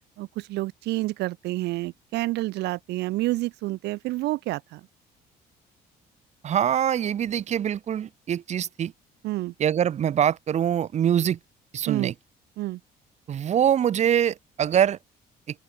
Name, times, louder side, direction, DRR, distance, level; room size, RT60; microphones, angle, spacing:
voice 1, 0.2-4.8 9.2-9.5 11.9-12.1 12.6-12.8, right 18 dB, 85° right, 2.2 m, -29 dB
voice 2, 6.4-8.9 9.6-11.4 11.7-12.1 13.3-15.0, right 9 dB, 40° right, 0.7 m, -24 dB
open air
cardioid pair, 110°, 17 cm